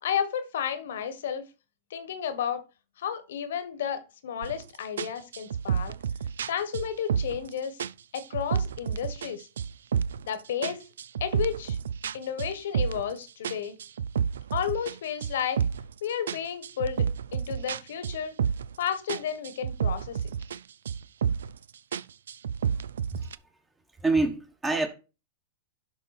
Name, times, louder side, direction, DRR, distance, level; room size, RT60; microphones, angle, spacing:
voice 1, 0.0-1.5 1.9-2.6 3.0-5.9 6.5-7.8 8.1-9.5 10.3-10.9 11.2-11.8 12.1-13.7 14.5-15.6 16.0-17.0 17.3-18.3 18.8-20.3, left 8 dB, 75° left, 1.3 m, -32 dB
sound 1, 4.4-4.6 5.0-7.5 7.8-9.3 9.6-10.3 10.6-13.1 13.4-15.9 16.3-18.8 19.1-20.6 20.9-21.6 21.9-23.4, right 7 dB, 80° right, 0.3 m, -30 dB
voice 2, 24.0-24.9, right 3 dB, 15° right, 1.3 m, -26 dB
11.0 x 3.8 x 4.2 m
hypercardioid pair, 110°, 0 cm